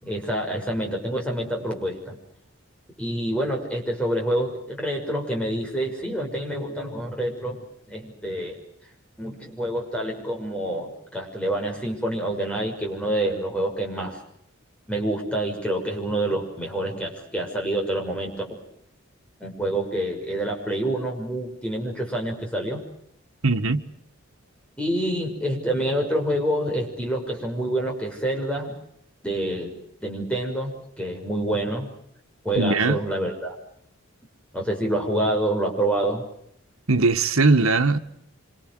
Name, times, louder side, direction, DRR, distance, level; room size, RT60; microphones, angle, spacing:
voice 1, 0.0-2.2 3.0-8.6 9.2-14.2 14.9-18.6 19.4-22.8 24.8-28.8 29.2-29.7 30.0-30.7 31.0-31.9 32.4-33.5 34.5-36.2, right 1 dB, 5° left, 6.3 m, -27 dB
voice 2, 23.4-23.8 32.6-33.0 36.9-38.0, right 3 dB, 90° right, 1.7 m, -20 dB
27.0 x 26.5 x 6.4 m
head